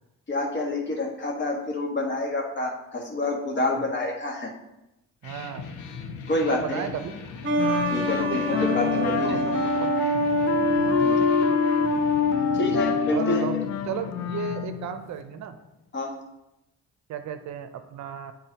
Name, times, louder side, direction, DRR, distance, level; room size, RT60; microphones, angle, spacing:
voice 1, 0.3-4.5 6.3-6.8 7.9-9.4 11.0-11.3 12.5-13.4 15.9-16.1, left 2 dB, 40° left, -1 dB, 1.5 m, -28 dB
sound 1, 5.2-15.8, left 5 dB, 80° left, 0.9 m, -40 dB
voice 2, 5.2-5.7 6.5-7.1 8.1-9.9 10.7-11.3 13.1-13.6 13.9-15.6 17.1-18.3, right 8 dB, 65° right, 9 dB, 0.6 m, -35 dB
sound 2, 7.4-13.7, left 1 dB, 40° right, 1.1 m, -25 dB
Wind instrument woodwind instrument, 7.6-14.9, left 10 dB, 60° left, 0.5 m, -28 dB
10.5 x 3.8 x 2.9 m, 0.91 s
cardioid pair, 90°, 30 cm